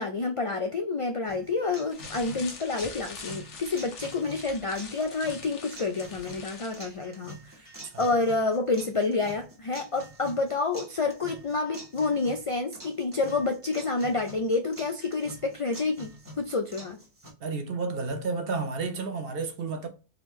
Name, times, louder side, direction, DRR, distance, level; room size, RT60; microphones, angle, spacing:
voice 1, 0.0-7.7 8.0-17.0, left 3 dB, 55° left, 0.3 m, -29 dB
sound 1, 1.3-17.3, right 1 dB, 15° right, 1.3 m, -47 dB
sound 2, 1.9-6.9, left 5 dB, 85° left, 1.2 m, -44 dB
voice 2, 17.4-19.9, right 4 dB, 55° right, 1.0 m, -31 dB
3.7 x 3.3 x 3.1 m
omnidirectional pair, 1.2 m